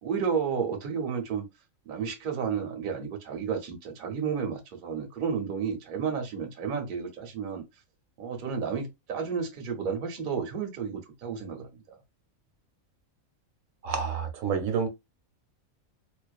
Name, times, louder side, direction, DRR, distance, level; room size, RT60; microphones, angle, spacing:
voice 1, 0.0-1.5 1.8-7.6 8.2-12.0, right 6 dB, 55° right, 0.6 m, -32 dB
voice 2, 13.8-14.9, right 6 dB, 75° right, 1.0 m, -28 dB
2.4 x 2.2 x 2.3 m
omnidirectional pair, 1.5 m